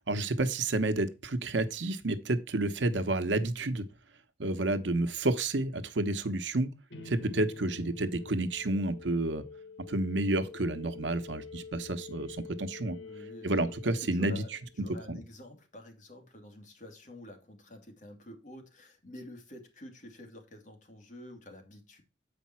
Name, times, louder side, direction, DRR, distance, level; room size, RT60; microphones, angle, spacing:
voice 1, 0.1-3.9 4.4-6.7 7.0-9.4 9.9-13.0 13.4-14.4 15.1-15.2, right 2 dB, 85° right, 1.0 m, -30 dB
sound 1, 6.9-14.8, left 5 dB, 80° left, 1.7 m, -47 dB
voice 2, 12.9-13.7 14.1-14.5 14.8-22.0, left 1 dB, 45° left, 2.4 m, -49 dB
8.3 x 5.2 x 4.4 m
head